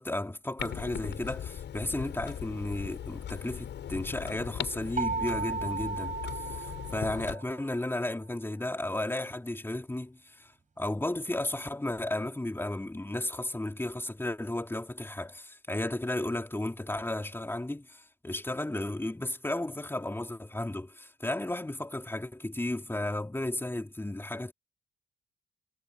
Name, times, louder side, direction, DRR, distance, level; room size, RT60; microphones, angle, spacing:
voice 1, 0.0-10.5 10.8-24.5, left 1 dB, 10° left, 3.1 m, -34 dB
Clock, 0.6-7.4, left 9 dB, 70° left, 7.7 m, -39 dB
sound 1, 5.0-7.7, right 5 dB, 40° right, 7.9 m, -35 dB
cardioid pair, 70°, 19 cm